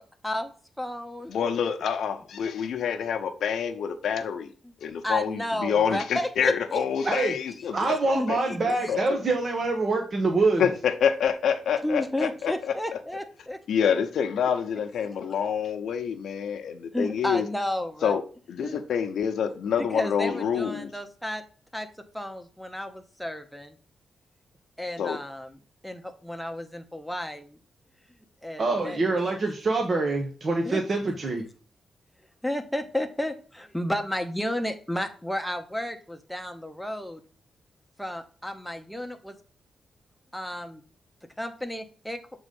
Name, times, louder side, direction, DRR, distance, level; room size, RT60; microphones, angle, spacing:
voice 1, 0.8-1.3 4.6-4.7 5.0-7.3 8.1-8.6 11.8-13.6 16.9-18.2 18.6-18.8 19.8-21.4 21.7-21.9 22.1-23.8 24.8-25.6 25.8-27.6 28.4-29.0 30.6-30.8 32.4-37.2 38.0-39.4 40.3-40.8 41.4-42.2, left 1 dB, ahead, 0.9 m, -32 dB
voice 2, 1.3-4.5 4.8-7.9 8.3-8.4 8.9-9.2 10.6-12.5 13.7-17.4 18.0-18.2 18.5-20.9 25.0-25.2, left 7 dB, 80° left, 0.8 m, -27 dB
voice 3, 7.7-10.6 28.6-31.4, right 3 dB, 40° right, 1.1 m, -25 dB
7.1 x 3.8 x 5.2 m
wide cardioid pair, 140°, 0 cm